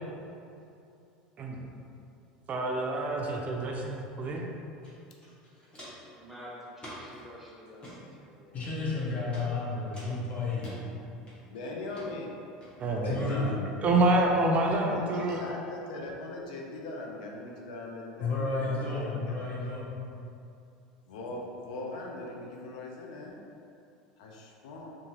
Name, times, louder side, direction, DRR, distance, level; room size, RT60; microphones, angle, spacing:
voice 1, 2.5-4.5 12.8-15.4, right 2 dB, 40° right, 0 dB, 0.3 m, -28 dB
Walk footsteps, 4.8-4.9 5.2-6.1 6.8-7.2 7.7-8.0 8.6-9.0 9.3-9.5 9.9-10.8 11.3-11.6 11.9-12.1 12.6-12.7, equal, 25° left, 1.0 m, -47 dB
voice 2, 6.1-8.6 11.4-11.9, equal, 5° right, -7 dB, 0.9 m, -49 dB
voice 3, 8.5-10.7 13.0-13.5 18.2-19.9, left 3 dB, 40° left, -5 dB, 0.7 m, -32 dB
voice 4, 11.5-12.4 13.0-13.5 14.9-19.4 21.1-23.4 24.2-24.9, left 2 dB, 80° left, -1 dB, 0.4 m, -40 dB
2.7 x 2.4 x 2.7 m, 2.6 s
hypercardioid pair, 90°, 4 cm